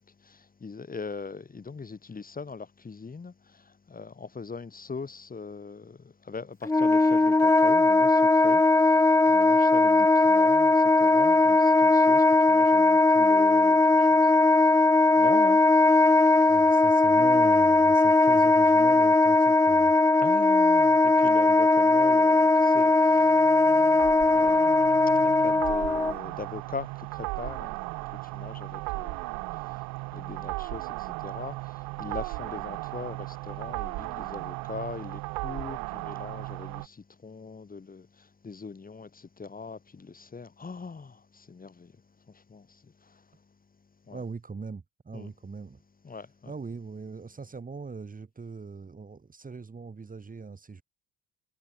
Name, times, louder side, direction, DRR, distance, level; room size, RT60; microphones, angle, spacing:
voice 1, 0.0-14.8 15.1-15.6 16.1-16.6 20.2-27.8 28.1-41.9 42.3-43.3 44.1-44.2 45.1-45.3 46.0-46.5, left 4 dB, 25° left, 2.8 m, -41 dB
Wind instrument woodwind instrument, 6.6-26.1, left 2 dB, 10° left, 0.6 m, -20 dB
voice 2, 16.5-19.9 44.1-45.8 46.5-50.8, right 4 dB, 25° right, 2.4 m, -40 dB
sound 1, 22.4-36.9, right 24 dB, 85° right, 0.7 m, -36 dB
cardioid pair, 100°, 35 cm